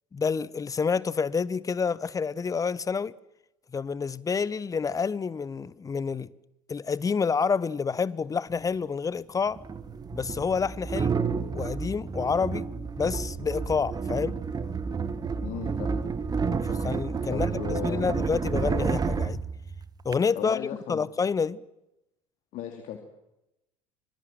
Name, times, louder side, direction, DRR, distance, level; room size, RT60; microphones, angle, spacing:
voice 1, 0.1-3.1 3.7-6.3 6.7-9.6 10.1-11.2 11.5-12.7 13.0-14.4 16.6-19.4 20.0-21.6, left 5 dB, 20° left, 0.9 m, -28 dB
sound 1, 8.5-8.6 9.6-20.2, right 5 dB, 20° right, 1.7 m, -30 dB
voice 2, 15.4-16.0 17.3-18.2 20.3-21.0 22.5-23.0, left 10 dB, 45° left, 3.0 m, -36 dB
26.0 x 24.5 x 7.7 m
figure-of-eight pair, 70°, 18 cm